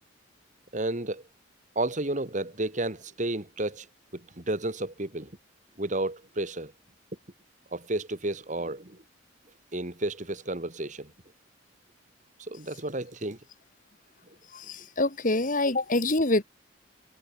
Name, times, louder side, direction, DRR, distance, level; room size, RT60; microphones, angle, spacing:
voice 1, 0.7-1.2 1.8-3.9 4.1-5.3 5.8-6.7 7.7-9.0 9.7-11.1 12.4-13.4, right 2 dB, 40° right, 2.1 m, -32 dB
voice 2, 14.5-16.4, left 2 dB, 40° left, 1.9 m, -26 dB
head